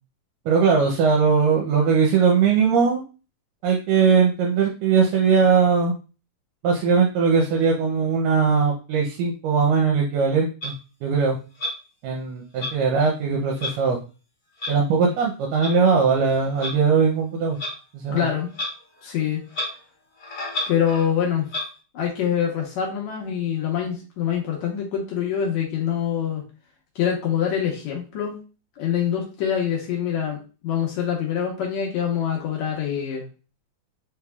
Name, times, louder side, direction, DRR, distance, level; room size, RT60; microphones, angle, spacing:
voice 1, 0.5-3.0 3.6-5.9 6.6-10.8 11.0-11.4 12.0-14.0 14.7-17.6 17.9-18.3, right 5 dB, 80° right, 0 dB, 2.2 m, -20 dB
Clock, 10.6-10.7 11.6-11.7 12.6-12.7 13.6-13.7 14.6-14.7 15.6-15.7 16.6-16.7 17.6-17.7 18.5-18.7 19.0-19.1 19.5-19.7 20.2-21.1 21.5-21.6, left 1 dB, 45° left, 1.2 m, -30 dB
voice 2, 18.1-18.5 19.0-19.4 20.7-21.5 21.9-26.4 27.0-28.4 28.8-30.4 30.6-33.2, left 8 dB, 70° left, -1 dB, 1.9 m, -25 dB
5.2 x 3.3 x 2.3 m, 0.33 s
omnidirectional pair, 4.0 m